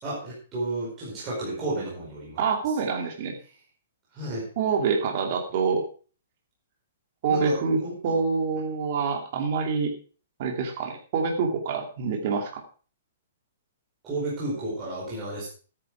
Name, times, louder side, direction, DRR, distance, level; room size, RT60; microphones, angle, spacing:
voice 1, 0.0-2.4 4.1-4.4 7.3-7.9 14.0-15.5, right 2 dB, 15° right, -7 dB, 5.0 m, -32 dB
voice 2, 2.4-3.4 4.6-5.8 7.2-9.9 10.4-12.6, right 5 dB, 35° right, 3 dB, 2.6 m, -26 dB
13.0 x 9.7 x 4.9 m, 0.39 s
hypercardioid pair, 170°, 0 cm